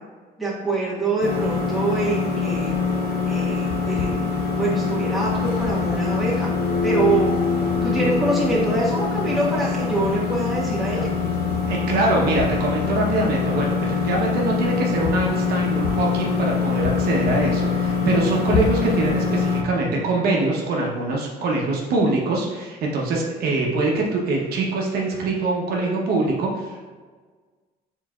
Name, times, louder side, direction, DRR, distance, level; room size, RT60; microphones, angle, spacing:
voice 1, 0.4-2.7 3.2-6.5 6.8-7.3 7.8-11.0, right 2 dB, ahead, -7 dB, 1.5 m, -25 dB
sound 1, 1.2-19.6, left 5 dB, 70° left, 0.6 m, -23 dB
voice 2, 11.7-26.8, right 2 dB, 65° right, -1 dB, 0.8 m, -23 dB
4.5 x 3.9 x 2.3 m, 1.4 s
cardioid pair, 110°, 17 cm